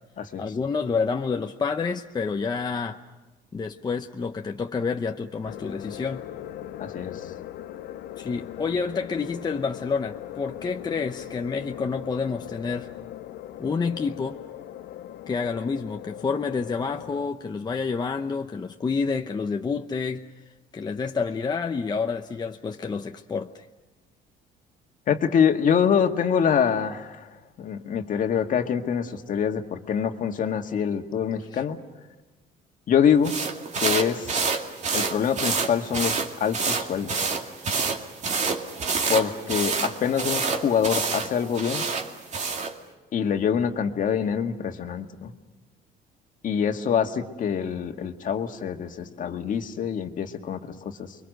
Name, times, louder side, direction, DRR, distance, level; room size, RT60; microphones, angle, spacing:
voice 1, 0.4-3.0 3.5-6.2 8.2-12.9 13.6-14.4 15.3-20.2 20.7-23.7 31.5-31.6, left 5 dB, 25° left, 4 dB, 0.9 m, -28 dB
sound 1, 5.4-17.3, left 12 dB, 75° left, 0.9 m, -40 dB
voice 2, 6.8-7.3 25.1-31.8 32.9-33.4 33.8-34.4 34.9-37.1 39.1-41.9 43.1-45.3 46.4-51.2, left 7 dB, 50° left, 5 dB, 1.8 m, -25 dB
sound 2, 33.2-42.8, right 4 dB, 45° right, 2.5 m, -28 dB
29.5 x 23.0 x 6.6 m, 1.1 s
cardioid pair, 110°, 17 cm